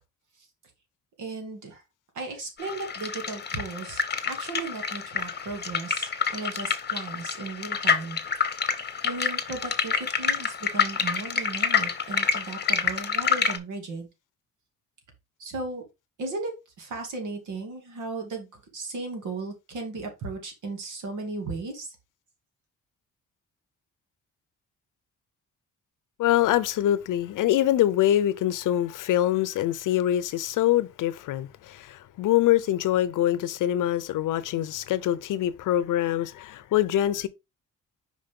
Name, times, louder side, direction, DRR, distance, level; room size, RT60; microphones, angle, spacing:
voice 1, 1.2-1.8 2.1-8.2 9.0-14.1 15.4-15.8 16.2-16.5 16.8-21.9, right 3 dB, 75° right, 2.4 m, -36 dB
sound 1, 2.6-13.6, left 6 dB, 35° left, 1.0 m, -28 dB
voice 2, 26.2-37.3, left 12 dB, 80° left, 0.7 m, -24 dB
5.1 x 5.1 x 3.7 m
cardioid pair, 85°, 31 cm